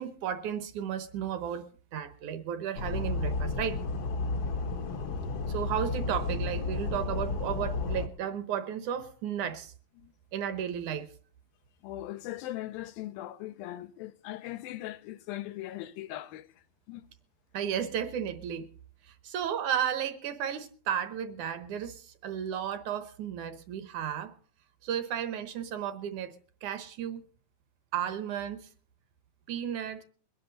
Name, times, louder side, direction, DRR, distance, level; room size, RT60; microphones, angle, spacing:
voice 1, 0.0-1.7 1.9-3.8 5.5-9.7 10.3-11.1 17.5-18.7 19.1-24.3 24.8-27.3 27.9-28.7 29.5-30.0, right 9 dB, 65° right, 2.2 m, -33 dB
sound 1, 2.7-8.1, left 3 dB, 60° left, 1.6 m, -32 dB
voice 2, 11.8-16.5 16.9-17.0, left 15 dB, 85° left, 2.6 m, -39 dB
22.0 x 10.5 x 4.0 m
omnidirectional pair, 4.1 m